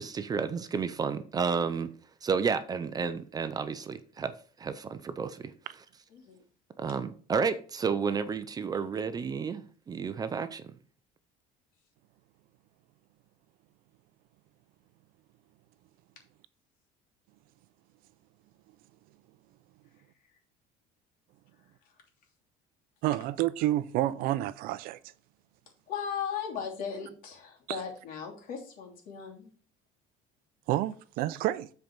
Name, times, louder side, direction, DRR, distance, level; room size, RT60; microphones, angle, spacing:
voice 1, 0.0-1.9 2.2-4.3 4.6-5.5 6.8-10.6, right 5 dB, 25° right, 0.6 m, -31 dB
voice 2, 6.1-6.4 25.9-29.5, left 7 dB, 60° left, 3.0 m, -37 dB
voice 3, 23.0-25.0 30.7-31.7, right 14 dB, 70° right, 0.6 m, -29 dB
7.7 x 4.6 x 5.2 m
cardioid pair, 145°, 16 cm